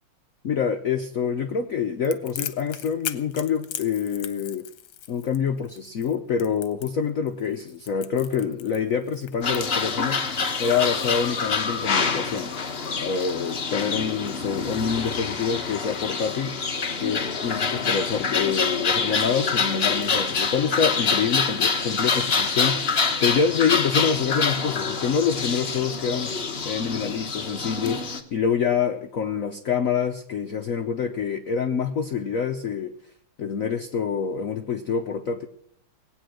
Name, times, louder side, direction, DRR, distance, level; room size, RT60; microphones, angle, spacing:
voice 1, 0.4-4.7 5.1-10.2 10.6-12.5 13.0-16.6 17.0-32.9 33.4-35.5, left 6 dB, 70° left, 7 dB, 0.7 m, -26 dB
Crackle, 2.0-10.3, left 11 dB, 85° left, 1.8 m, -38 dB
sound 1, 9.4-28.2, left 4 dB, 35° left, 1.1 m, -26 dB
19.5 x 9.0 x 6.4 m, 0.70 s
omnidirectional pair, 2.4 m